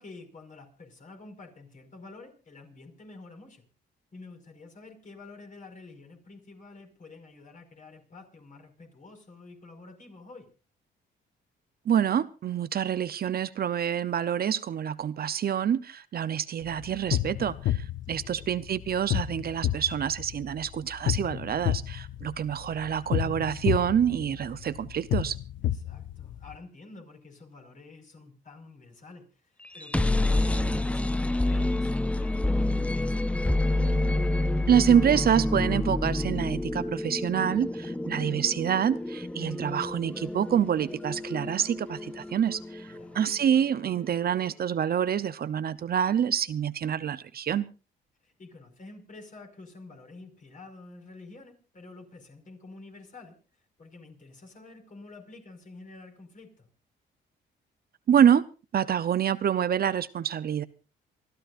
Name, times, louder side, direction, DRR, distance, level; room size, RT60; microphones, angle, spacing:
voice 1, 0.0-3.6 4.1-10.5 18.1-18.5 25.6-33.3 42.9-43.2 48.2-53.4 53.8-56.7, left 3 dB, 40° left, 5 dB, 5.4 m, -49 dB
voice 2, 11.9-25.4 34.7-47.7 58.1-58.5 58.7-60.6, right 9 dB, 50° right, 14 dB, 0.7 m, -26 dB
sound 1, 16.6-26.6, left 12 dB, 75° left, 0.8 m, -31 dB
sound 2, 29.6-43.5, left 2 dB, 5° left, 0.6 m, -28 dB
28.0 x 14.0 x 2.5 m, 0.33 s
cardioid pair, 90°, 20 cm